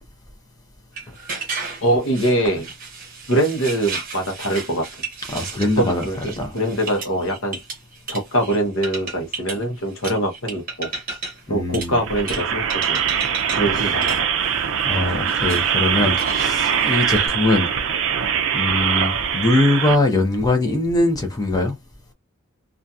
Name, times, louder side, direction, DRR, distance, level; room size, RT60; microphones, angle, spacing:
sound 1, 1.0-8.6 8.8-9.6 10.0-11.5 11.7-12.4 12.7-13.6 13.9-17.3, right 4 dB, 40° right, 0.8 m, -33 dB
voice 1, 1.8-2.7 3.3-4.8 5.8-7.6 8.1-10.9 11.5-13.1 13.6-14.2, right 1 dB, 65° left, 0.9 m, -23 dB
voice 2, 5.3-6.1 6.4-6.6 11.5-12.0 13.7-13.9 14.8-17.7 18.5-21.7, left 2 dB, 15° left, 0.6 m, -21 dB
sound 2, 12.0-19.9, right 8 dB, 60° right, 0.4 m, -22 dB
2.7 x 2.4 x 2.3 m
head